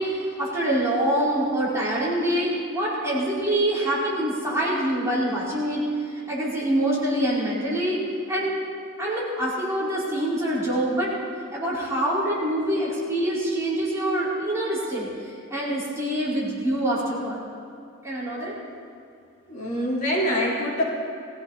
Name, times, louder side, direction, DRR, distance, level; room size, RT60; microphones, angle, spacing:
voice 1, 0.0-5.9 6.3-8.0 8.3-8.5 9.0-11.1 11.5-17.4 18.0-18.5, right 1 dB, 15° right, -8 dB, 5.1 m, -25 dB
voice 2, 19.5-20.8, equal, 40° left, -7 dB, 4.5 m, -24 dB
21.5 x 16.0 x 4.3 m, 2.5 s
head